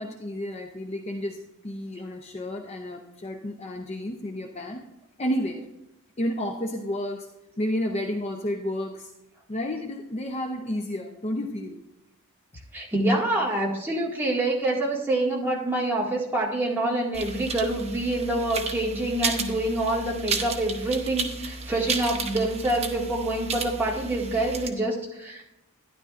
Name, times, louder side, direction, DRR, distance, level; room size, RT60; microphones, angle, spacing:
voice 1, 0.0-4.9 5.2-5.7 6.2-7.3 7.6-9.1 9.5-11.8, left 1 dB, 30° left, 2 dB, 0.6 m, -31 dB
voice 2, 12.7-25.4, right 1 dB, 10° right, -4 dB, 2.0 m, -26 dB
sound 1, 17.1-24.7, right 4 dB, 30° right, 0.9 m, -33 dB
12.5 x 10.5 x 2.5 m, 0.90 s
head